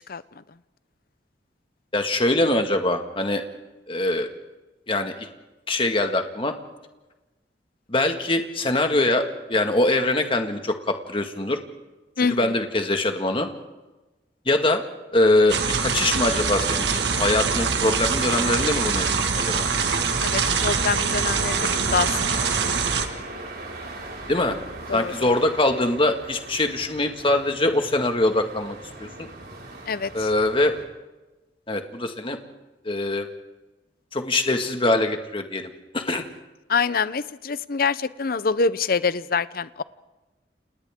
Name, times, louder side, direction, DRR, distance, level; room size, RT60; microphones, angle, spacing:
voice 1, 1.9-3.4 3.9-4.3 4.9-5.3 5.7-6.5 7.9-11.6 12.3-13.5 14.5-14.8 15.1-19.1 19.3-19.7 24.3-24.6 24.9-29.3 30.1-30.8 31.7-32.4 32.9-33.3 34.1-36.2, left 2 dB, 30° left, 5 dB, 1.8 m, -23 dB
voice 2, 12.2-12.6 20.2-22.1 22.4-22.7 24.9-25.1 29.9-30.3 36.7-39.8, left 5 dB, 55° left, 16 dB, 0.7 m, -25 dB
sound 1, 15.1-30.8, right 2 dB, 60° right, 5.3 m, -39 dB
sound 2, 15.5-23.1, right 5 dB, 80° right, 1.8 m, -24 dB
30.0 x 28.0 x 3.7 m, 1.1 s
head